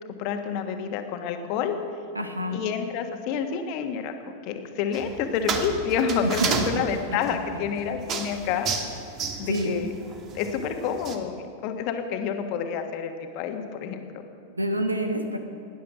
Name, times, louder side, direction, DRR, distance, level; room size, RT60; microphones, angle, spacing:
voice 1, 0.2-1.7 2.5-8.7 9.4-9.9 10.3-14.2, left 7 dB, 45° left, 6 dB, 1.4 m, -29 dB
voice 2, 2.1-2.6 6.4-6.6 9.4-9.7 14.6-15.4, equal, 85° right, 6 dB, 1.2 m, -27 dB
sound 1, 4.9-11.2, right 5 dB, 35° right, 1.4 m, -32 dB
17.5 x 10.0 x 6.1 m, 2.4 s
figure-of-eight pair, 90°, 0 cm